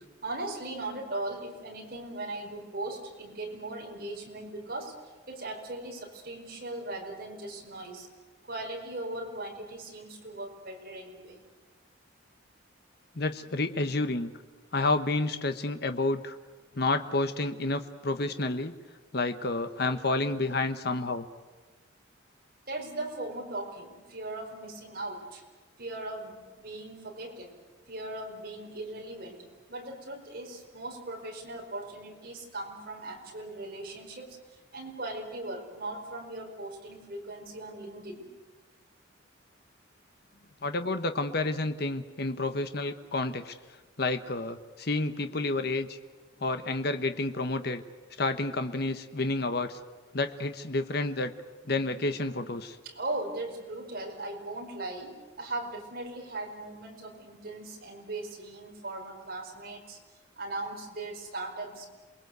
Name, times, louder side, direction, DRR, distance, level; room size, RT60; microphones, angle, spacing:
voice 1, 0.2-8.1 8.4-11.4 22.7-25.4 25.8-27.5 27.9-29.4 29.7-38.3 52.8-60.0 60.4-61.9, right 2 dB, 45° right, 1 dB, 5.0 m, -39 dB
voice 2, 13.1-14.3 14.7-16.4 16.7-18.7 19.1-21.3 40.6-43.5 44.0-46.0 46.4-47.8 48.2-49.8 50.1-51.3 51.7-52.8, left 2 dB, 50° left, 8 dB, 1.1 m, -30 dB
28.0 x 21.0 x 8.1 m, 1.3 s
head